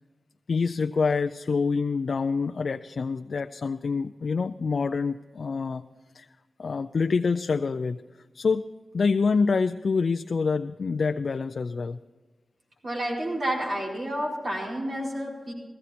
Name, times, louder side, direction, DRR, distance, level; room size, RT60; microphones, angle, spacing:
voice 1, 0.5-5.8 6.1-6.3 6.6-8.0 8.3-12.0, left 4 dB, 65° left, 7 dB, 0.4 m, -26 dB
voice 2, 12.8-15.5, right 1 dB, 60° right, -3 dB, 4.5 m, -30 dB
16.0 x 14.5 x 4.2 m, 1.3 s
wide cardioid pair, 115°, 0 cm